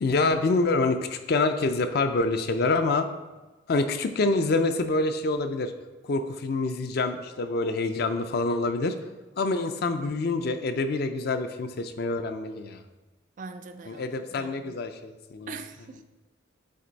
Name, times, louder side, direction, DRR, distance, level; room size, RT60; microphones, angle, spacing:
voice 1, 0.0-3.1 3.7-5.7 6.0-8.9 9.4-12.8 13.9-15.5, left 3 dB, 50° left, 8 dB, 0.4 m, -26 dB
voice 2, 13.4-14.1 14.4-14.8 15.5-16.0, right 4 dB, 40° right, 9 dB, 0.3 m, -42 dB
7.7 x 3.2 x 4.0 m, 1.2 s
head